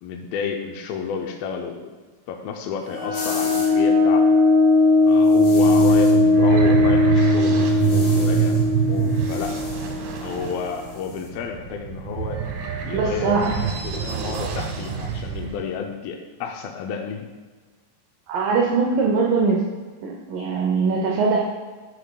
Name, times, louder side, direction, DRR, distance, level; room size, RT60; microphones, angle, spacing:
voice 1, 0.0-2.0 2.3-4.4 5.1-9.6 10.2-12.4 12.8-17.3, left 6 dB, 85° left, 2 dB, 2.1 m, -31 dB
sound 1, 2.9-10.3, left 3 dB, 15° right, 0.8 m, -18 dB
sound 2, 3.1-3.8 5.2-6.2 7.6-8.7 8.9-11.3, left 3 dB, 55° left, 2.2 m, -38 dB
sound 3, 5.1-15.6, right 7 dB, 70° right, 2.7 m, -25 dB
voice 2, 12.9-13.6 18.3-19.6 20.0-21.4, right 4 dB, 90° right, -2 dB, 1.9 m, -21 dB
13.5 x 5.7 x 2.3 m, 1.4 s
omnidirectional pair, 5.0 m